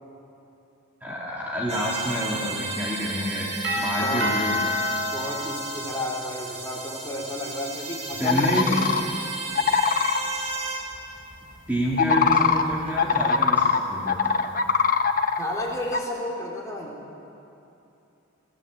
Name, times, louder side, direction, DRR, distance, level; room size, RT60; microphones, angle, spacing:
voice 1, 1.0-4.8 8.2-8.8 11.7-14.4, equal, 10° right, -5 dB, 2.9 m, -28 dB
sound 1, 1.7-10.8, right 3 dB, 30° right, 4.3 m, -34 dB
Doorbell, 3.6-6.5, left 1 dB, 65° right, 5.2 m, -28 dB
voice 2, 5.1-8.9 15.4-16.9, left 1 dB, 15° left, -3 dB, 4.0 m, -32 dB
sound 2, 8.3-9.0 9.6-10.2 11.9-13.8 14.1-15.4 15.9-16.0, left 6 dB, 40° left, 1.1 m, -21 dB
29.0 x 18.0 x 8.3 m, 2.8 s
head